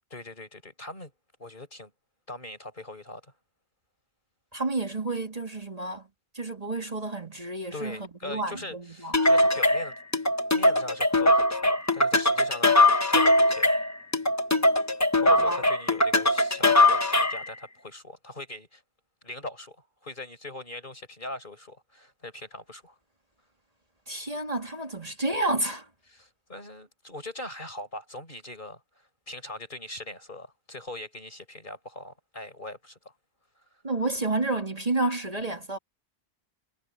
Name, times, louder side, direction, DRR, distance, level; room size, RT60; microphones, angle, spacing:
voice 1, 0.1-1.1 1.4-1.9 2.3-3.3 7.7-10.0 10.5-12.8 13.1-13.8 15.2-18.8 19.2-23.0 26.1-33.2, left 2 dB, 50° left, 5.7 m, -41 dB
voice 2, 4.5-6.1 6.3-8.0 8.2-9.1 15.3-15.6 24.1-25.8 33.8-35.8, right 2 dB, 35° right, 3.1 m, -30 dB
sound 1, 9.1-17.5, left 1 dB, 15° left, 1.1 m, -21 dB
omnidirectional pair, 1.1 m